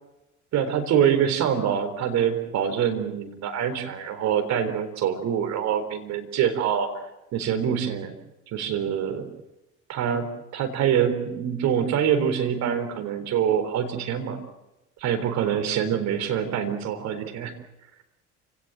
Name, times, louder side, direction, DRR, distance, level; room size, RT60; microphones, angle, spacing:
voice 1, 0.5-6.9 7.3-8.1 8.5-9.3 9.9-10.2 10.5-14.4 15.0-17.5, right 8 dB, 50° right, 7 dB, 3.9 m, -25 dB
29.5 x 18.0 x 7.7 m, 0.97 s
figure-of-eight pair, 60°, 34 cm